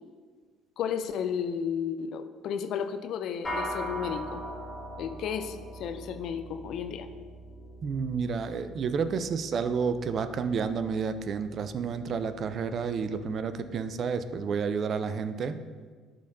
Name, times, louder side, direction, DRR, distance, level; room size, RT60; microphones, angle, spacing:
voice 1, 0.8-4.4 5.0-7.1, left 7 dB, 60° left, 9 dB, 0.4 m, -33 dB
sound 1, 3.4-13.0, equal, 15° left, 1.8 m, -41 dB
voice 2, 7.8-15.6, right 5 dB, 50° right, 11 dB, 0.4 m, -30 dB
11.5 x 3.8 x 2.6 m, 1.5 s
hypercardioid pair, 55°, 0 cm